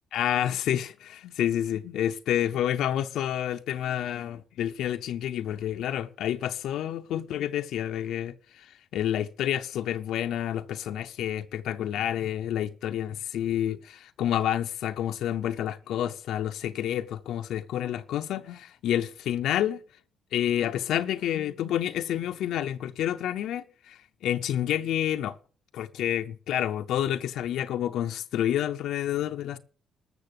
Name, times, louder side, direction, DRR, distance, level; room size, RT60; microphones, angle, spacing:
voice 1, 0.1-19.8 20.3-25.4 25.7-29.6, left 11 dB, 80° left, 0.6 m, -29 dB
13.5 x 6.6 x 6.7 m
cardioid pair, 90°, 0 cm